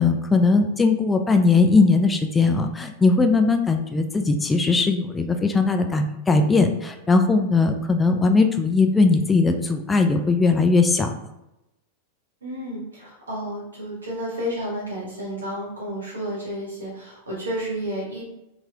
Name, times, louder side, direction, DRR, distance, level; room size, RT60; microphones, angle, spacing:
voice 1, 0.0-11.1, left 3 dB, 15° left, 5 dB, 0.3 m, -19 dB
voice 2, 12.4-18.2, equal, 85° right, -5 dB, 1.4 m, -31 dB
3.0 x 2.9 x 2.4 m, 0.89 s
hypercardioid pair, 95°, 0 cm